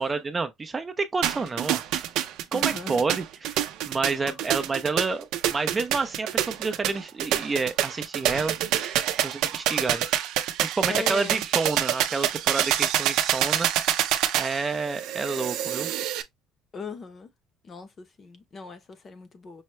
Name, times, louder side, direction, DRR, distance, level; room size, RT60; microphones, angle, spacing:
voice 1, 0.0-1.8 2.5-10.0 10.6-13.7 14.4-15.9, right 4 dB, 20° right, 0.5 m, -29 dB
sound 1, 1.2-16.2, right 12 dB, 75° right, 0.5 m, -26 dB
voice 2, 2.5-3.0 4.3-4.5 10.9-11.4 16.7-17.3 17.6-19.6, left 5 dB, 30° left, 0.7 m, -39 dB
5.5 x 2.2 x 3.0 m
cardioid pair, 150°, 0 cm